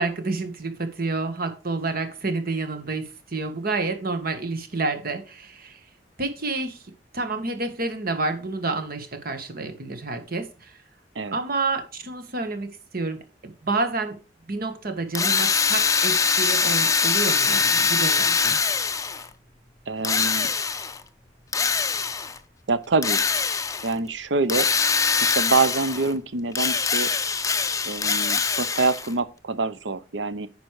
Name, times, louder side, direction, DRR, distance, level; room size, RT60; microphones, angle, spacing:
voice 1, 0.0-5.8 6.2-6.9 7.1-10.8 11.3-14.2 14.5-18.6, right 3 dB, 55° right, 1.5 m, -29 dB
Drill, 15.1-19.3 20.0-21.0 21.5-22.4 23.0-23.9 24.5-26.1 26.5-29.1, left 5 dB, 20° left, 0.5 m, -23 dB
voice 2, 19.9-20.5 22.7-23.2 23.8-24.7 25.2-27.1 27.9-30.5, right 3 dB, 85° right, 0.8 m, -25 dB
9.6 x 5.2 x 4.7 m
head